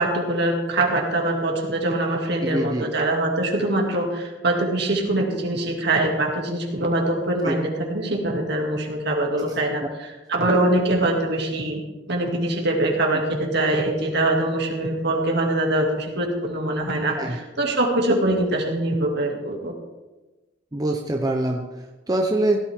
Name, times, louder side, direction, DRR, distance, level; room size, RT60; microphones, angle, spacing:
voice 1, 0.0-9.8 10.3-11.8 12.1-19.7, right 1 dB, 60° right, 0 dB, 2.5 m, -23 dB
voice 2, 2.4-2.9 7.4-7.6 9.4-9.6 10.4-10.5 17.1-17.4 20.7-22.6, right 1 dB, 20° right, 2 dB, 0.8 m, -25 dB
17.0 x 12.0 x 3.6 m, 1.1 s
head